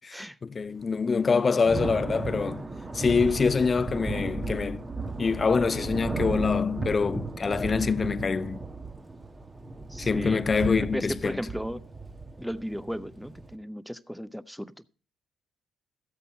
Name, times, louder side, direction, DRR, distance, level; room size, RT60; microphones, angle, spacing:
voice 1, 0.4-2.6 2.9-4.8 5.2-8.6 10.0-11.4, left 5 dB, 35° left, 0.5 m, -25 dB
Thunder / Rain, 1.2-13.6, right 3 dB, 25° right, 1.4 m, -35 dB
voice 2, 9.9-11.9 12.4-14.7, equal, ahead, 0.7 m, -36 dB
14.0 x 8.4 x 4.2 m
supercardioid pair, 65°, 0 cm